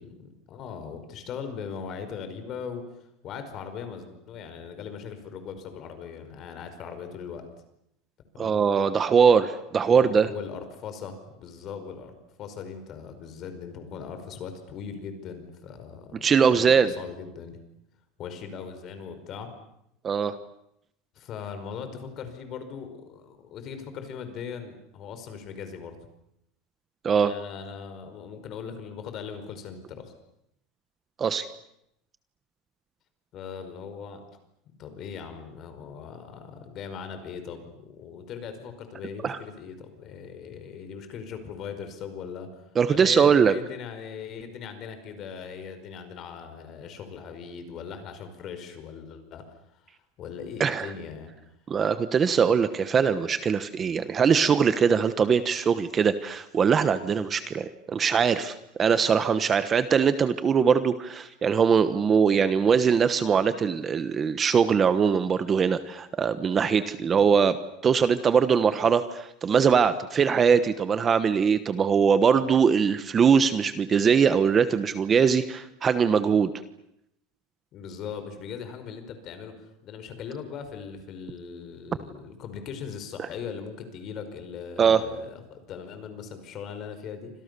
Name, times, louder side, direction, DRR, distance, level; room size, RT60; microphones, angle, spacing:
voice 1, 0.0-2.8 3.2-7.4 8.4-8.6 9.9-12.1 12.4-16.3 16.5-17.6 18.2-19.5 21.2-26.0 27.1-30.1 33.3-34.2 34.7-42.5 42.9-49.4 49.7-49.9 50.2-51.3 77.7-87.3, left 6 dB, 35° left, 9 dB, 5.1 m, -39 dB
voice 2, 8.4-10.3 16.2-16.9 20.0-20.3 27.0-27.3 31.2-31.5 39.2-39.4 42.8-43.5 50.6-50.9 51.7-67.6 67.8-76.5 84.8-85.0, right 6 dB, 20° right, 12 dB, 1.1 m, -22 dB
29.5 x 26.0 x 6.9 m, 0.78 s
supercardioid pair, 160°, 0 cm